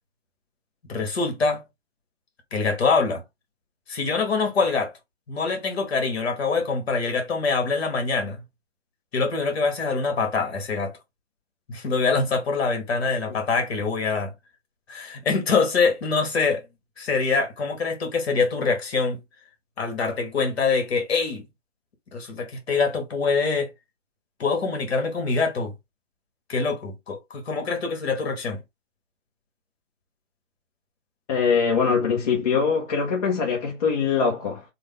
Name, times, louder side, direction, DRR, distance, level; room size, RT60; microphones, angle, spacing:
voice 1, 0.9-1.6 2.5-3.2 3.9-4.9 5.3-8.4 9.1-11.0 11.7-14.3 14.9-16.6 17.0-19.2 19.8-21.4 22.1-23.7 24.4-25.7 26.5-28.6, left 4 dB, 55° left, 1.5 m, -24 dB
voice 2, 31.3-34.6, left 5 dB, 30° left, 0.7 m, -22 dB
3.2 x 2.2 x 3.4 m
hypercardioid pair, 150°, 38 cm